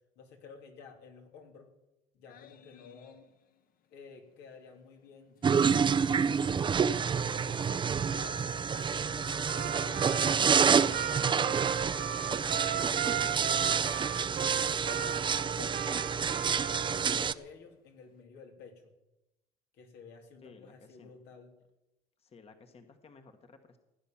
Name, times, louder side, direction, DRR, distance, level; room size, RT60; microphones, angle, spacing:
voice 1, 0.1-1.7 2.1-3.2 3.9-6.5 7.1-8.5 9.6-12.3 13.2-14.3 14.8-15.8 16.3-18.9 19.7-21.5, left 5 dB, 85° left, 2 dB, 3.2 m, -52 dB
sound 1, 2.3-3.7 4.0-4.1 5.4-16.8 17.1-17.4, left 9 dB, 55° left, 1.1 m, -52 dB
sound 2, 5.4-17.3, right 6 dB, 30° right, 0.5 m, -28 dB
Trumpet, 9.4-17.2, right 11 dB, 60° right, 1.3 m, -36 dB
voice 2, 20.4-21.1 22.2-23.8, left 4 dB, 35° left, 7 dB, 1.5 m, -56 dB
16.5 x 9.9 x 7.3 m, 0.92 s
cardioid pair, 110°, 17 cm